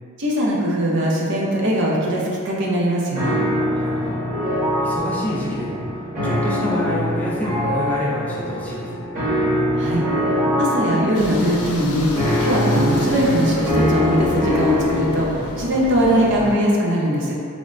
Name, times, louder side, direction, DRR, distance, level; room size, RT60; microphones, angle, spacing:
voice 1, 0.2-3.4 9.8-10.1 10.6-12.1 12.4-17.3, equal, 55° right, -4 dB, 0.5 m, -20 dB
sound 1, 3.1-15.1, equal, 35° right, 1.2 m, -23 dB
voice 2, 3.7-4.2 4.8-5.9 6.2-9.0, equal, 5° left, -7 dB, 0.3 m, -27 dB
sound 2, 11.1-16.5, left 2 dB, 85° left, 0.4 m, -31 dB
3.1 x 2.0 x 2.4 m, 2.4 s
head